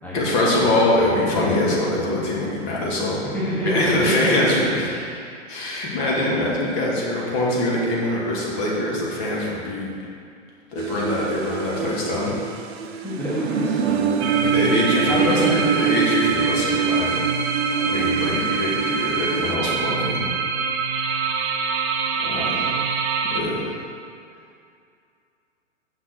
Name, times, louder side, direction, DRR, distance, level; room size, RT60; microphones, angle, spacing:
voice 1, 0.1-3.2 3.7-4.8 5.5-9.9 10.7-12.3 14.4-17.2 17.9-20.3 22.2-22.5 23.3-23.6, left 1 dB, 40° left, -4 dB, 2.1 m, -23 dB
voice 2, 3.2-4.5 4.8-5.4 13.0-14.6 14.9-16.0 17.7-18.4 22.2-22.8 23.6-23.7, equal, 5° left, -9 dB, 1.4 m, -28 dB
sound 1, 10.8-19.6, right 6 dB, 55° right, 0.7 m, -25 dB
sound 2, 14.2-23.4, right 5 dB, 25° right, 0.3 m, -25 dB
6.4 x 5.9 x 6.0 m, 2.4 s
figure-of-eight pair, 115°, 37 cm